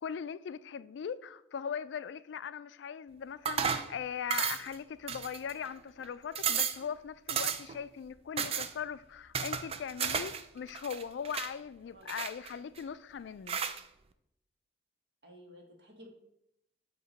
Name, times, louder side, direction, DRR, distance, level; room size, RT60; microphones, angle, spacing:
voice 1, 0.0-13.6, left 7 dB, 70° left, 0.3 m, -40 dB
sound 1, 3.5-3.9 4.3-4.8 5.1-5.7 6.0-6.1 6.4-6.8 7.3-7.8 8.4-8.7 9.3-10.4 10.7-11.5 12.1-12.8 13.5-13.8, right 7 dB, 30° right, 0.3 m, -33 dB
voice 2, 15.2-16.1, equal, 65° right, 1.4 m, -54 dB
8.1 x 2.9 x 5.1 m
head